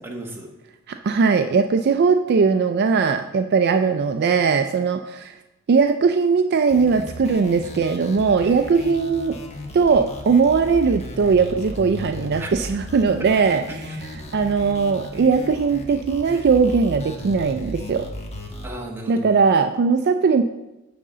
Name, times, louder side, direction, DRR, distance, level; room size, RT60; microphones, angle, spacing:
voice 1, 0.0-0.5 12.4-12.5 13.1-13.4 13.7-14.0 18.6-19.5, right 1 dB, 10° right, 0 dB, 1.2 m, -35 dB
voice 2, 1.0-5.3 5.7-9.4 9.7-13.6 14.3-18.1 19.1-20.4, right 5 dB, 50° right, 7 dB, 0.4 m, -19 dB
sound 1, 6.7-18.7, left 1 dB, 30° left, 1.1 m, -36 dB
9.5 x 3.7 x 6.7 m, 1.0 s
head